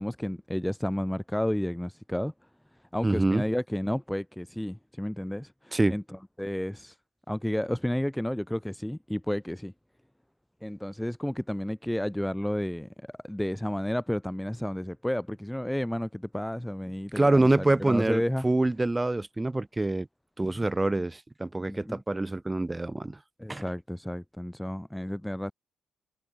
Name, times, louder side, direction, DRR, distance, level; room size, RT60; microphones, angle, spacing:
voice 1, 0.0-2.3 2.9-7.0 7.3-9.7 10.6-18.5 20.4-20.7 21.7-22.0 23.4-25.5, equal, 5° left, 3.9 m, -31 dB
voice 2, 3.0-3.4 5.7-5.9 17.1-20.1 20.4-23.2 23.5-23.6, right 2 dB, 15° right, 6.9 m, -26 dB
cardioid pair, 90°, 0 cm